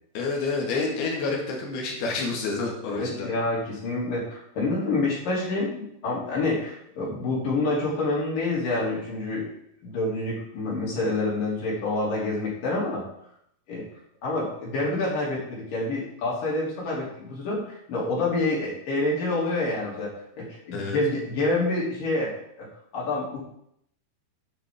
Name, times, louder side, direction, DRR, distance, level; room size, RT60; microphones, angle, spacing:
voice 1, 0.1-3.3 20.7-21.0, left 3 dB, 70° left, -1 dB, 4.0 m, -28 dB
voice 2, 2.9-9.5 9.8-13.1 13.7-13.8 14.2-17.6 17.9-22.7 22.9-23.4, left 2 dB, 55° left, -5 dB, 4.7 m, -27 dB
10.5 x 10.0 x 3.8 m, 0.73 s
omnidirectional pair, 4.8 m